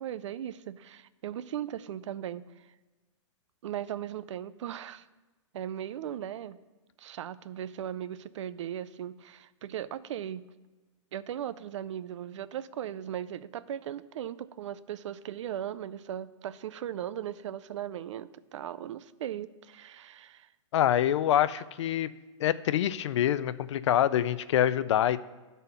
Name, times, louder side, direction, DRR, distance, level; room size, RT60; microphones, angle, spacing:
voice 1, 0.0-2.7 3.6-5.1 5.5-6.6 7.0-10.5 11.1-20.5, right 10 dB, 70° right, 16 dB, 0.4 m, -38 dB
voice 2, 20.7-22.1 22.4-25.2, left 11 dB, 65° left, 16 dB, 0.4 m, -25 dB
11.0 x 4.1 x 5.6 m, 1.2 s
hypercardioid pair, 155°, 16 cm